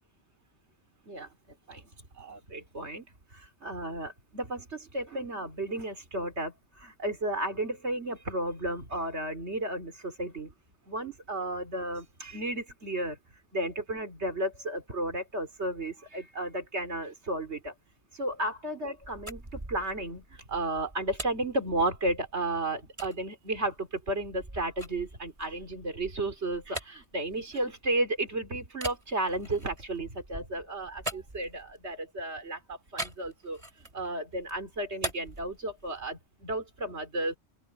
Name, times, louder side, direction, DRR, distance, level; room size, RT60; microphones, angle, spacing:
voice 1, 2.2-3.1 3.3-10.5 10.9-13.2 13.5-17.7 18.1-37.4, right 1 dB, 80° right, 3.8 m, -33 dB
sound 1, 19.0-22.3 23.0-23.2 23.7-28.1 28.7-32.0 33.0-34.1 34.4-36.2, right 1 dB, 30° right, 2.7 m, -42 dB
open air
omnidirectional pair, 1.1 m